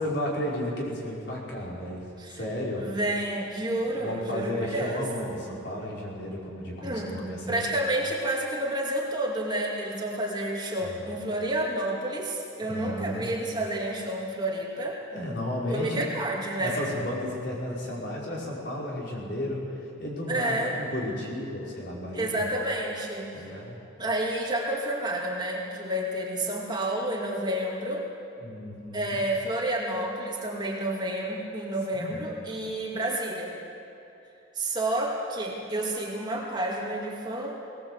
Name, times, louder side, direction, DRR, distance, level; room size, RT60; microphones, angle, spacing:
voice 1, 0.0-2.9 4.0-7.6 10.8-11.1 12.7-13.3 15.1-16.1 16.6-22.5 23.3-23.8 28.4-29.2 31.9-32.3, left 1 dB, 55° left, -4 dB, 5.4 m, -33 dB
voice 2, 2.8-5.0 6.8-7.2 7.5-15.0 15.7-16.8 20.3-20.8 22.1-23.4 24.0-28.1 28.9-33.6 34.5-37.6, right 1 dB, 20° right, -2 dB, 2.5 m, -30 dB
20.0 x 20.0 x 8.0 m, 2.8 s
head